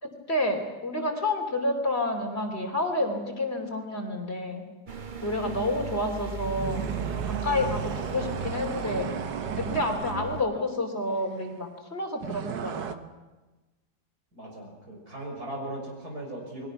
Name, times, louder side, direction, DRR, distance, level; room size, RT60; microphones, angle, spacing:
voice 1, 0.0-4.6 5.2-6.8 7.2-9.1 9.5-13.1, left 1 dB, 35° left, 3 dB, 3.2 m, -29 dB
Trancer love, 4.9-10.4, right 5 dB, 35° right, 1.0 m, -36 dB
sound 1, 6.4-10.3 12.2-13.0, right 8 dB, 85° right, 1.8 m, -35 dB
voice 2, 14.3-16.7, right 1 dB, 60° right, 0 dB, 6.8 m, -38 dB
29.5 x 21.5 x 5.9 m, 1.2 s
omnidirectional pair, 1.8 m